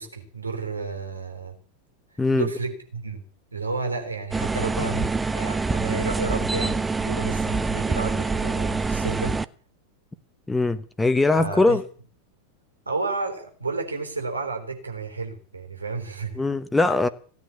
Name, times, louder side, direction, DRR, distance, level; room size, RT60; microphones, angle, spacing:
voice 1, 0.0-1.6 2.3-3.2 3.5-9.4 11.4-11.8 12.9-16.4, right 4 dB, 80° right, 3.7 m, -31 dB
sound 1, 4.3-9.4, right 3 dB, 10° right, 0.7 m, -25 dB
voice 2, 10.5-11.8 16.4-17.1, left 2 dB, 10° left, 1.2 m, -21 dB
17.5 x 9.3 x 8.4 m
figure-of-eight pair, 90°, 0 cm